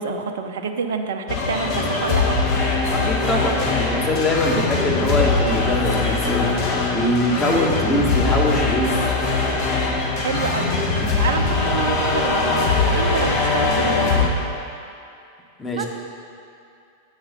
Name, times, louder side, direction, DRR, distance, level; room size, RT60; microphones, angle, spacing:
voice 1, 0.0-2.4 10.1-10.8 11.1-14.2 15.7-15.9, right 5 dB, 60° right, 6 dB, 0.6 m, -28 dB
sound 1, 1.3-14.3, left 3 dB, 40° left, 1.1 m, -21 dB
voice 2, 2.9-6.5 6.9-8.9 15.6-15.9, left 1 dB, 10° left, -2 dB, 1.3 m, -22 dB
8.3 x 4.8 x 6.5 m, 2.5 s
figure-of-eight pair, 90°, 0 cm